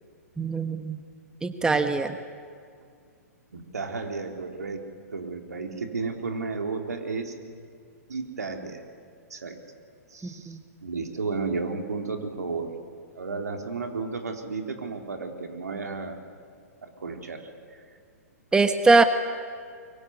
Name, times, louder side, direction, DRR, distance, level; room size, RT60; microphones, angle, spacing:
voice 1, 0.4-1.0 1.4-2.1 10.2-10.6 18.5-19.0, right 3 dB, 10° right, 9 dB, 1.3 m, -22 dB
voice 2, 3.5-7.3 8.1-8.8 9.3-9.6 10.1-12.7 13.2-16.2 16.8-17.4, right 4 dB, 80° right, 4 dB, 3.7 m, -33 dB
24.0 x 23.5 x 9.7 m, 2.2 s
figure-of-eight pair, 115°, 9 cm